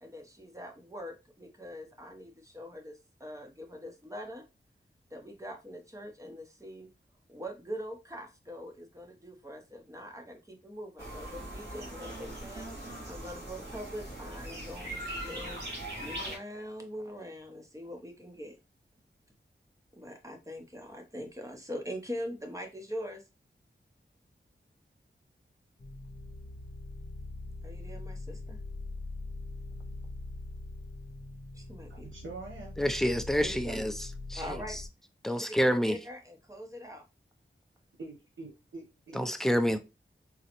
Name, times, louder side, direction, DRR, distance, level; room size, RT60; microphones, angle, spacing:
voice 1, 0.0-4.4 5.1-6.9 7.3-15.6 16.0-18.5 20.0-23.2 27.6-28.6 31.5-32.0 33.4-33.9 34.3-34.8 35.3-37.0, equal, 15° right, 0.8 m, -43 dB
sound 1, 11.0-16.4, right 1 dB, 60° right, 2.1 m, -40 dB
sound 2, 25.8-34.9, left 2 dB, 45° left, 0.7 m, -42 dB
voice 2, 31.9-32.8 38.0-39.5, right 3 dB, 80° right, 0.9 m, -45 dB
voice 3, 32.8-33.9 34.3-34.8 35.2-36.0 39.1-39.8, equal, ahead, 0.4 m, -28 dB
3.7 x 2.1 x 2.9 m
wide cardioid pair, 60°, 20 cm